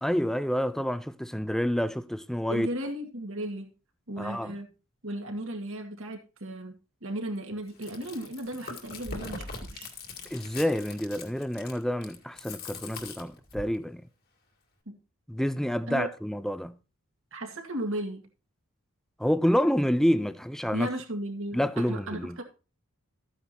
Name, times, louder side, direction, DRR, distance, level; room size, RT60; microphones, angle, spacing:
voice 1, 0.0-2.7 4.2-4.5 10.3-14.0 15.3-16.7 19.2-20.9 21.5-22.4, equal, ahead, 0.5 m, -28 dB
voice 2, 2.5-3.7 4.1-4.7 5.0-9.9 14.9-15.0 15.9-16.1 17.3-18.3 20.7-22.4, right 1 dB, 65° right, 2.2 m, -35 dB
Chewing mastication, 7.7-13.8, left 3 dB, 45° left, 1.9 m, -41 dB
13.5 x 9.3 x 3.0 m
head